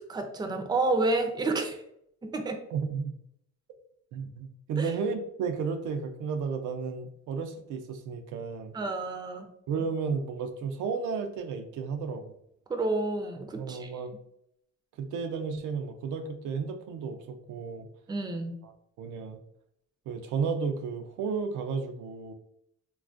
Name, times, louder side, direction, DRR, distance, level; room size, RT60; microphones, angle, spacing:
voice 1, 0.1-1.8 2.2-2.6 4.8-4.9 8.7-9.5 12.7-13.9 18.1-18.6, right 2 dB, 15° right, 5 dB, 0.4 m, -29 dB
voice 2, 2.7-3.1 4.1-8.7 9.7-12.3 13.5-14.1 15.0-17.9 18.6-18.7 19.0-19.4 20.1-22.3, right 5 dB, 85° right, 6 dB, 0.5 m, -33 dB
3.2 x 2.3 x 2.4 m, 0.74 s
cardioid pair, 90°, 30 cm